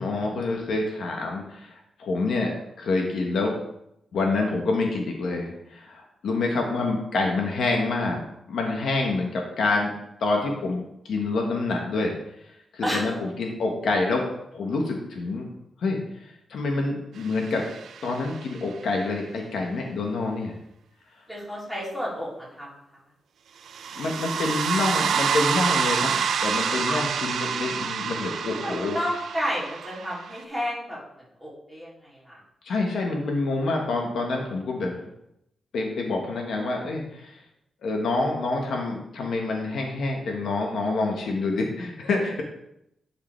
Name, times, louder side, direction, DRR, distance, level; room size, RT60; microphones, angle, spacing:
voice 1, 0.0-2.5 2.8-3.6 4.1-9.9 10.2-12.1 12.7-14.2 14.5-15.5 15.8-16.0 16.5-17.7 18.0-20.5 23.9-29.0 32.6-34.9 35.7-37.4 37.8-42.4, left 3 dB, 70° left, 1 dB, 1.3 m, -27 dB
sound 1, 17.4-18.4 23.7-30.4, right 7 dB, 75° right, 0.4 m, -27 dB
voice 2, 21.3-22.7 26.9-27.0 28.6-31.0 31.4-32.4, equal, ahead, -7 dB, 3.0 m, -31 dB
10.5 x 5.0 x 3.4 m, 0.80 s
wide cardioid pair, 150°, 0 cm